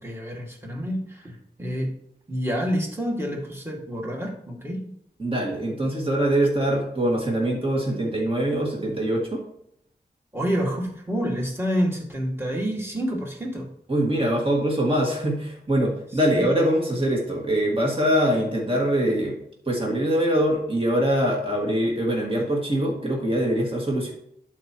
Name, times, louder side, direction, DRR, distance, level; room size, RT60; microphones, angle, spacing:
voice 1, 0.0-1.9 2.3-4.9 10.3-13.7 16.3-16.5, equal, 15° right, -1 dB, 2.2 m, -28 dB
voice 2, 5.2-9.4 13.9-19.4 19.7-24.1, right 1 dB, 30° right, -1 dB, 2.3 m, -23 dB
11.5 x 4.9 x 3.1 m, 0.71 s
cardioid pair, 50°, 17 cm